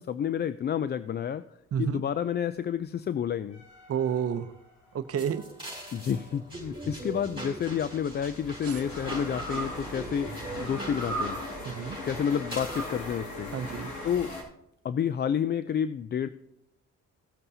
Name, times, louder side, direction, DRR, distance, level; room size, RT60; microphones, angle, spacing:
voice 1, 0.0-1.4 1.8-3.6 5.9-11.4 12.0-13.5 14.0-14.3 14.8-16.3, left 8 dB, 35° left, 13 dB, 0.4 m, -30 dB
voice 2, 1.7-2.0 3.9-4.5 4.9-5.4 8.6-8.8 11.6-12.0 13.5-13.9, right 8 dB, 50° right, 11 dB, 0.7 m, -30 dB
sound 1, 3.5-5.0 6.9-14.4, equal, 75° left, 2.5 m, -38 dB
sound 2, 5.2-12.9, right 2 dB, 15° right, 4.3 m, -41 dB
16.5 x 7.8 x 2.8 m, 0.84 s
cardioid pair, 90°, 30 cm